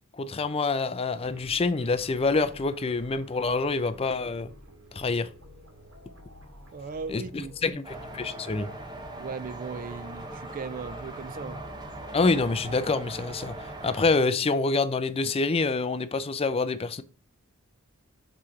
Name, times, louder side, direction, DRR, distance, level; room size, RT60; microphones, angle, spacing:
voice 1, 0.1-4.5 4.9-5.3 7.1-8.7 12.1-13.6 13.8-17.0, left 3 dB, 30° left, 0.4 m, -26 dB
sound 1, 1.2-7.7, equal, 70° right, 1.8 m, -51 dB
voice 2, 6.7-7.8 9.2-11.6, right 5 dB, 40° right, 0.4 m, -38 dB
sound 2, 7.8-14.1, right 1 dB, 20° right, 0.9 m, -40 dB
6.1 x 3.3 x 5.7 m
head